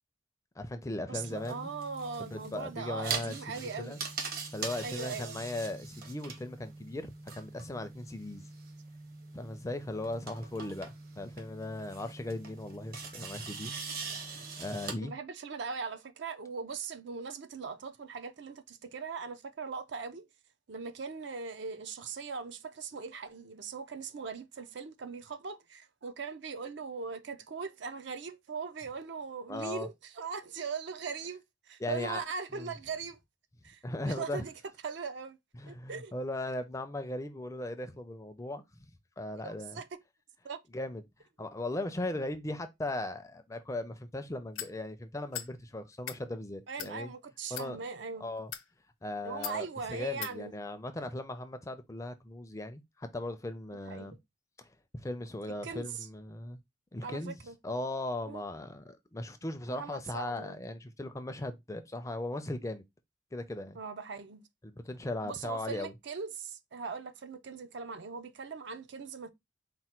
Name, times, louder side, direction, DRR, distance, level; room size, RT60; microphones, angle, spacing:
voice 1, 0.6-1.7 2.2-4.0 4.5-8.4 9.3-13.7 14.2-15.1 29.5-29.9 31.8-32.2 32.5-32.8 33.8-34.4 35.5-38.9 39.2-39.8 40.7-41.0 41.4-47.1 47.5-47.8 48.2-48.5 49.0-54.2 54.6-56.6 56.9-57.4 57.6-62.8 63.3-63.8 64.6-65.9, left 1 dB, 15° left, 0.4 m, -38 dB
sound 1, 1.1-14.9, right 4 dB, 50° right, 0.9 m, -42 dB
voice 2, 1.1-4.1 4.8-5.4 15.0-20.2 20.7-31.4 31.7-33.2 33.6-34.5 34.8-35.4 35.7-36.1 39.4-39.9 40.4-40.6 46.7-48.3 49.2-50.5 53.9-54.2 55.5-56.1 57.0-57.6 58.3-58.4 59.7-60.6 63.8-64.4 65.2-69.3, right 5 dB, 65° right, 0.5 m, -40 dB
sound 2, 44.5-44.7 45.3-45.5 45.9-46.2 46.8-46.9 47.5-47.7 48.4-48.7 49.4-49.6 50.2-50.3, left 11 dB, 80° left, 0.6 m, -39 dB
4.3 x 2.2 x 4.3 m
head